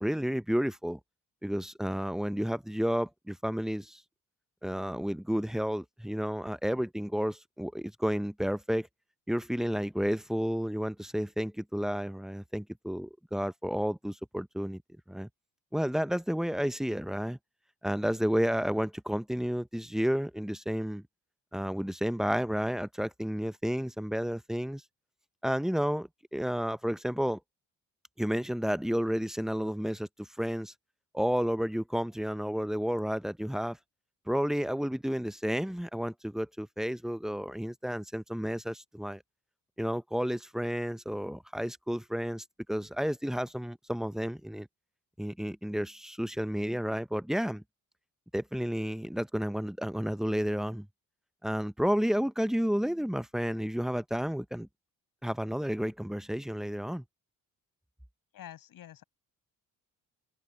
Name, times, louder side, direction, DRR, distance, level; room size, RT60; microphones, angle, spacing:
voice 1, 0.0-1.0 1.4-4.0 4.6-8.9 9.3-14.8 15.1-15.3 15.7-17.4 17.8-21.0 21.5-24.8 25.4-27.4 28.2-30.7 31.1-33.8 34.3-39.2 39.8-44.7 45.2-47.6 48.3-50.9 51.4-54.7 55.2-57.0, equal, ahead, 0.6 m, -31 dB
voice 2, 58.3-59.0, left 11 dB, 70° left, 6.1 m, -47 dB
open air
cardioid pair, 100°, 35 cm